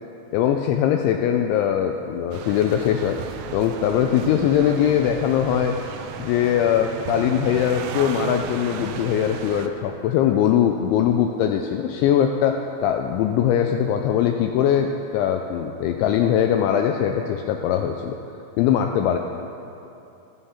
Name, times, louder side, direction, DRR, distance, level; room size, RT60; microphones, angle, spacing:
voice 1, 0.3-3.2 3.5-5.8 6.2-18.2 18.6-19.2, left 9 dB, 85° left, 5 dB, 2.7 m, -21 dB
sound 1, 2.3-9.7, right 7 dB, 80° right, 2.8 m, -34 dB
14.5 x 14.0 x 5.7 m, 2.8 s
omnidirectional pair, 5.9 m